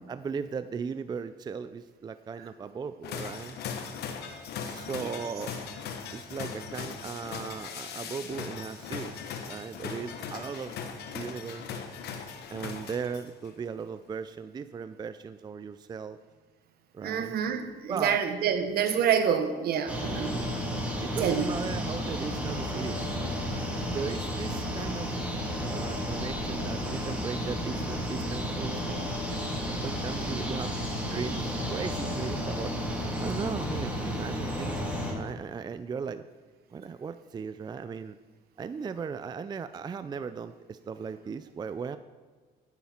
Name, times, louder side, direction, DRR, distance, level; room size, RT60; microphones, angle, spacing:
voice 1, 0.1-3.6 4.6-5.5 6.1-9.2 9.5-10.8 11.1-11.9 12.5-16.2 16.9-17.4 17.9-18.2 20.1-20.6 21.0-23.2 23.9-25.1 25.5-29.4 29.8-30.7 31.1-32.8 33.2-36.2 36.7-38.2 38.6-42.0, right 6 dB, 25° right, 12 dB, 0.4 m, -37 dB
sound 1, 3.0-13.5, left 6 dB, 75° left, 1.2 m, -39 dB
voice 2, 17.0-20.4 21.2-21.5, right 8 dB, 65° right, 8 dB, 1.3 m, -27 dB
sound 2, 19.9-35.1, equal, 10° right, 3.0 m, -32 dB
13.0 x 9.8 x 4.4 m, 1.4 s
cardioid pair, 110°, 17 cm